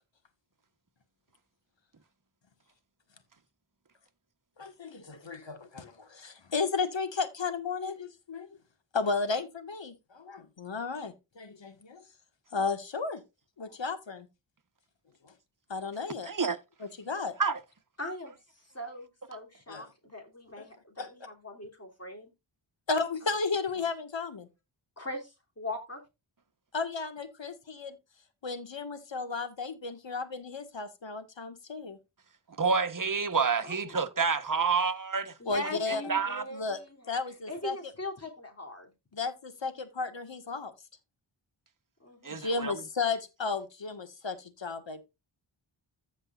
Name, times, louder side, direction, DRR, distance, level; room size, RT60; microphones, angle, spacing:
voice 1, 4.6-8.5 8.9-12.0 12.5-13.2 13.6-14.3 15.2-15.3 15.7-16.3 16.8-17.4 19.7-19.9 20.6-20.7 21.0-21.1 22.9-24.5 26.7-28.0 28.4-32.0 35.5-36.0 36.5-36.8 37.1-37.9 39.1-40.7 42.3-45.0, left 4 dB, 60° left, 1.8 m, -34 dB
voice 2, 16.3-16.6 17.4-17.6 32.6-35.3 36.1-36.4 42.2-42.7, right 5 dB, 40° right, 1.3 m, -28 dB
voice 3, 18.0-22.3 25.0-26.0 33.6-34.0 35.4-37.0 37.5-38.9 42.0-42.4, left 1 dB, 30° left, 3.2 m, -40 dB
15.0 x 5.3 x 2.5 m
cardioid pair, 45°, 50 cm